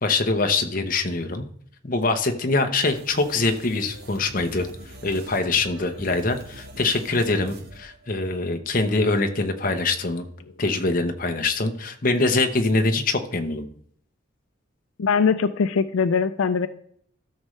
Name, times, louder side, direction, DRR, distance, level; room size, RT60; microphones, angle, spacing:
voice 1, 0.0-1.5 1.8-4.7 5.0-10.2 10.6-13.7, left 3 dB, 40° left, 6 dB, 0.8 m, -24 dB
sound 1, 2.9-8.6, right 1 dB, 50° right, 1.2 m, -44 dB
voice 2, 15.0-16.7, left 5 dB, 80° left, 12 dB, 0.4 m, -21 dB
13.0 x 6.4 x 3.2 m, 0.63 s
head